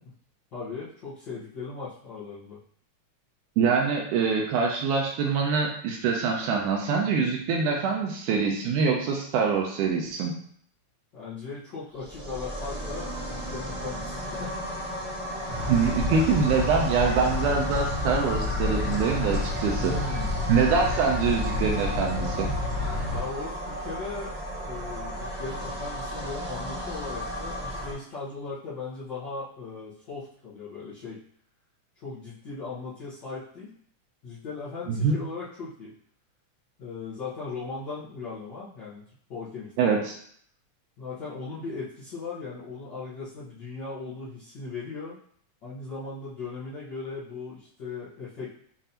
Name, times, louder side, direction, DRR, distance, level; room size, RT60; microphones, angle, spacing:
voice 1, 0.5-2.6 11.1-14.5 19.8-20.4 23.1-24.3 24.6-31.2 31.9-33.7 34.2-35.9 36.8-39.0 39.3-40.1 41.0-45.2 45.6-48.5, left 4 dB, 75° left, -12 dB, 1.0 m, -38 dB
voice 2, 3.6-10.4 15.7-20.0 20.5-22.5 34.9-35.1 39.8-40.1, right 5 dB, 80° right, 0 dB, 2.1 m, -24 dB
sound 1, 11.9-27.9, equal, 30° right, 1.1 m, -35 dB
sound 2, 15.5-23.2, left 2 dB, 50° left, 0.9 m, -30 dB
7.3 x 2.6 x 2.8 m, 0.63 s
omnidirectional pair, 3.7 m